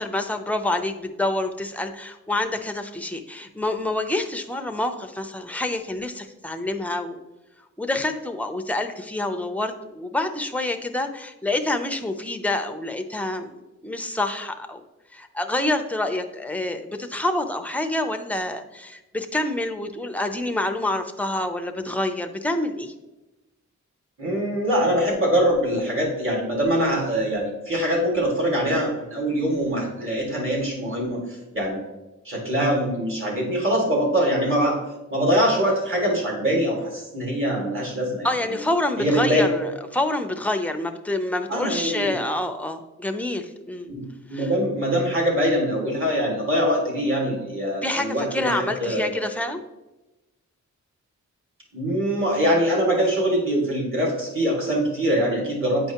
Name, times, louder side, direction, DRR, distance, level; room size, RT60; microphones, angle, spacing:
voice 1, 0.0-7.2 7.8-13.5 13.8-14.8 15.1-22.9 38.2-43.9 44.3-44.5 47.8-49.6, left 2 dB, 5° left, 6 dB, 0.5 m, -27 dB
voice 2, 24.2-31.2 31.5-31.8 32.3-34.8 35.1-38.3 39.0-39.5 41.5-42.2 43.9-49.1 51.7-55.9, equal, 45° right, -2 dB, 2.0 m, -23 dB
8.8 x 4.5 x 2.9 m, 1.0 s
wide cardioid pair, 125°, 30 cm